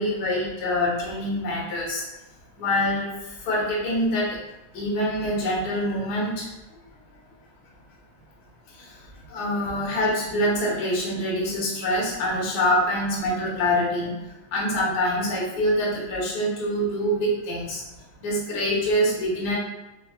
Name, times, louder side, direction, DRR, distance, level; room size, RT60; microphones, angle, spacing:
voice 1, 0.0-2.0 2.6-4.3 4.7-6.5 8.7-8.9 9.3-14.2 14.5-17.8 18.2-19.5, equal, 90° left, -6 dB, 0.9 m, -25 dB
4.9 x 2.8 x 2.4 m, 1.0 s
omnidirectional pair, 3.8 m